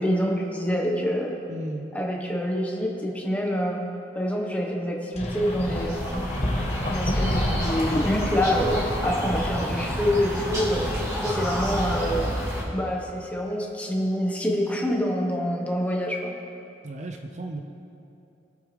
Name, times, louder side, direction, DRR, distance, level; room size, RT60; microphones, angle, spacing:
voice 1, 0.0-1.3 1.9-3.8 4.1-6.3 6.9-10.9 11.2-12.3 12.7-16.3, equal, 10° left, -1 dB, 1.4 m, -26 dB
voice 2, 1.5-1.9 16.8-17.6, right 1 dB, 40° right, 4 dB, 0.6 m, -34 dB
sound 1, 5.2-9.7, left 1 dB, 40° left, 1.3 m, -30 dB
sound 2, 5.2-12.6, equal, 20° right, 3.1 m, -29 dB
22.5 x 8.4 x 3.5 m, 2.8 s
head